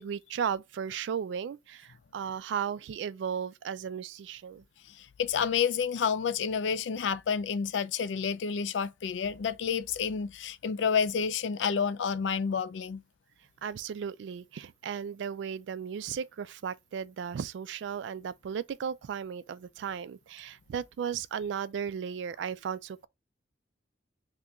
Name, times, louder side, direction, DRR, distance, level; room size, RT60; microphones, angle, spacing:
voice 1, 0.0-4.6 13.6-23.1, right 7 dB, 75° right, 0.3 m, -35 dB
voice 2, 4.9-13.0, left 6 dB, 85° left, 0.4 m, -29 dB
2.8 x 2.5 x 3.4 m
head